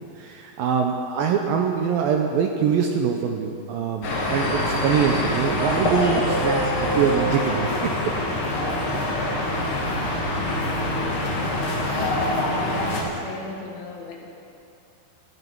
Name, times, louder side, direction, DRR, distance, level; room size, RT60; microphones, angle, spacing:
voice 1, 0.2-8.1, right 7 dB, 75° right, 3 dB, 2.2 m, -24 dB
sound 1, 4.0-13.0, left 1 dB, 45° left, 1.9 m, -24 dB
voice 2, 11.8-14.3, left 4 dB, 70° left, 1 dB, 3.0 m, -37 dB
17.5 x 13.5 x 4.6 m, 2.6 s
omnidirectional pair, 4.9 m